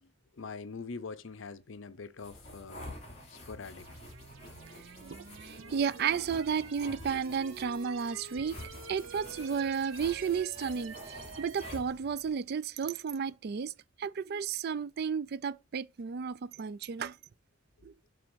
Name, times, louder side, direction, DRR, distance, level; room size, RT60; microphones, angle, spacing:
voice 1, 0.0-2.9 3.3-3.9, left 4 dB, 65° left, 0.6 m, -44 dB
sound 1, 2.2-12.3, left 1 dB, 35° left, 3.0 m, -48 dB
sound 2, 3.8-11.8, right 6 dB, 75° right, 0.7 m, -48 dB
voice 2, 4.7-13.7 14.0-17.2 17.8-17.9, right 6 dB, 50° right, 0.4 m, -33 dB
7.5 x 3.4 x 6.2 m
head